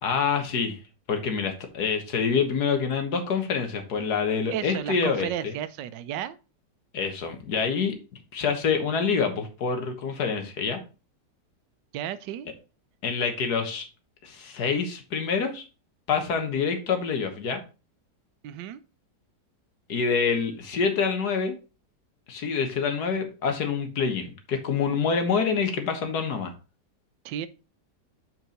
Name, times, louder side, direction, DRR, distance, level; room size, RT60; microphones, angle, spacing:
voice 1, 0.0-0.8 1.1-5.5 6.9-7.9 8.3-10.8 13.0-13.8 14.2-15.6 16.1-17.6 19.9-21.6 22.3-26.5, left 5 dB, 65° left, 1.7 m, -26 dB
voice 2, 4.5-6.4 11.9-12.5 18.4-18.8 27.2-27.5, right 10 dB, 85° right, 1.3 m, -33 dB
5.6 x 4.6 x 5.1 m
omnidirectional pair, 1.9 m